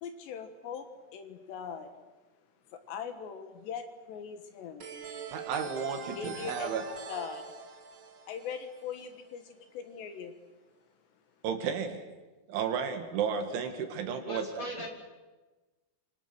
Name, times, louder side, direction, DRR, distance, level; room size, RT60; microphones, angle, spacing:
voice 1, 0.0-1.9 2.7-4.9 6.2-6.8 7.1-7.5 8.3-10.3, left 7 dB, 70° left, 8 dB, 3.5 m, -41 dB
sound 1, 4.8-9.4, right 6 dB, 45° right, 1.8 m, -44 dB
voice 2, 5.3-6.9 11.4-12.0 12.5-14.7, right 7 dB, 75° right, 6 dB, 4.6 m, -33 dB
voice 3, 14.2-14.9, equal, 25° left, 0 dB, 4.9 m, -38 dB
29.0 x 26.5 x 6.3 m, 1.2 s
omnidirectional pair, 5.5 m